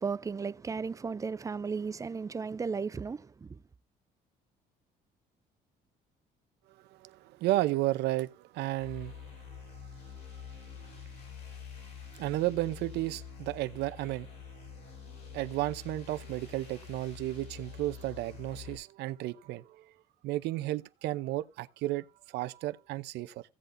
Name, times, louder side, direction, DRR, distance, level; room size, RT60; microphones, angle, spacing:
voice 1, 0.0-3.6, right 5 dB, 20° right, 0.4 m, -35 dB
voice 2, 6.9-10.9 12.2-14.3 14.7-19.9 20.2-23.4, right 16 dB, 85° right, 0.7 m, -34 dB
sound 1, 8.8-18.8, left 7 dB, 75° left, 5.8 m, -47 dB
16.0 x 8.0 x 2.6 m
cardioid pair, 110°, 17 cm